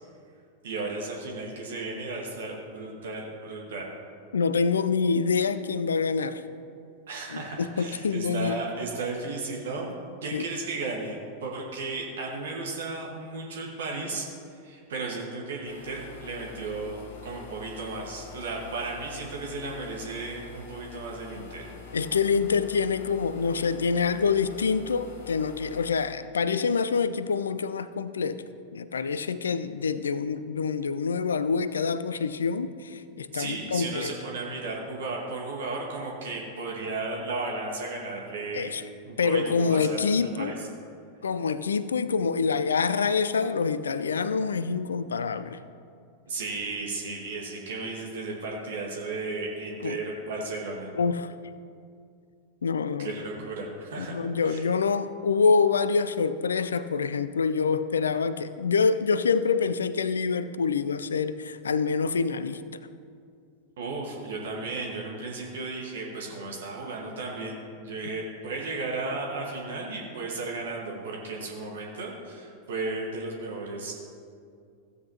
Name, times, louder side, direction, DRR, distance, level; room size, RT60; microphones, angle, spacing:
voice 1, 0.6-3.9 7.1-9.9 10.2-14.3 14.6-21.6 33.3-38.7 39.0-40.6 46.3-50.9 53.0-54.2 54.4-54.6 63.8-73.9, right 3 dB, 60° right, -1 dB, 1.5 m, -34 dB
voice 2, 4.3-6.4 7.3-8.6 10.3-10.4 21.9-28.5 28.7-34.1 38.5-38.8 39.2-40.5 41.2-45.6 49.8-50.0 51.0-51.3 52.6-53.2 54.0-62.6, left 5 dB, 70° left, 13 dB, 0.4 m, -26 dB
sound 1, 15.6-25.9, left 5 dB, 50° left, 1.3 m, -46 dB
15.5 x 8.1 x 2.9 m, 2.3 s
figure-of-eight pair, 90°, 0 cm